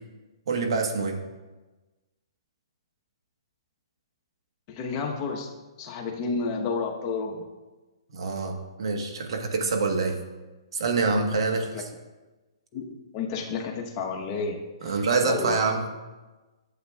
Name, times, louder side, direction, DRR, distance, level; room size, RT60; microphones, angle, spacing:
voice 1, 0.5-1.2 8.1-10.2 10.7-11.7 14.8-15.8, right 4 dB, 65° right, 4 dB, 1.2 m, -26 dB
voice 2, 4.7-5.5 5.8-7.5 11.7-11.8 12.7-15.6, left 4 dB, 30° left, 2 dB, 1.0 m, -31 dB
11.5 x 7.8 x 2.3 m, 1.2 s
hypercardioid pair, 140°, 3 cm